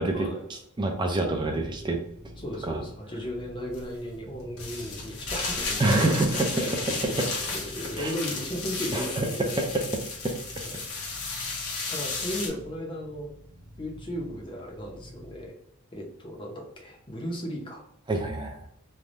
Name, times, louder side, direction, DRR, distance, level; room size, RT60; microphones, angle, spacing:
voice 1, 0.0-2.0 2.6-2.8 5.8-6.8 7.1-7.3 8.0-8.1 8.9-9.3 9.6-9.8 10.2-10.3 18.1-18.6, right 2 dB, 20° right, 2 dB, 0.4 m, -26 dB
sound 1, 1.3-15.5, equal, 80° right, 0.9 m, -48 dB
voice 2, 2.4-6.2 6.6-9.6 10.6-10.9 11.9-13.3 13.8-15.5 15.9-17.8, equal, 20° left, 0 dB, 0.6 m, -36 dB
sound 2, 3.7-3.8 4.6-12.5, left 3 dB, 70° left, 0.9 m, -34 dB
3.3 x 2.2 x 2.5 m, 0.75 s
head